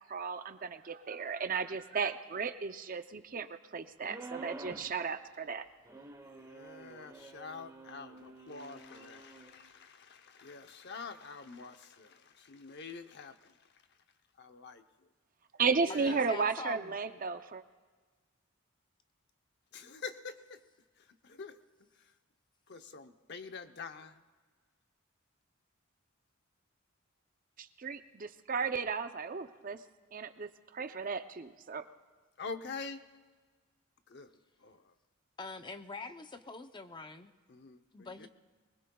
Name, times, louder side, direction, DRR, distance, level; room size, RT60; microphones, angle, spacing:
voice 1, 0.1-5.7 15.6-17.6 27.6-29.8 30.1-31.9, right 5 dB, 40° right, 9 dB, 0.6 m, -34 dB
sound 1, 4.0-4.9 5.9-9.5, right 2 dB, 15° right, 1.1 m, -49 dB
voice 2, 6.2-13.5 14.4-14.8 15.8-16.2 19.7-20.6 21.0-21.6 22.0-22.1 22.7-24.2 32.4-33.0 34.1-34.3 34.6-34.9 37.5-38.3, left 4 dB, 55° left, 8 dB, 0.8 m, -46 dB
voice 3, 15.9-17.0 35.4-37.3 37.9-38.3, left 3 dB, 20° left, 8 dB, 0.7 m, -44 dB
23.5 x 20.5 x 2.3 m, 1.4 s
head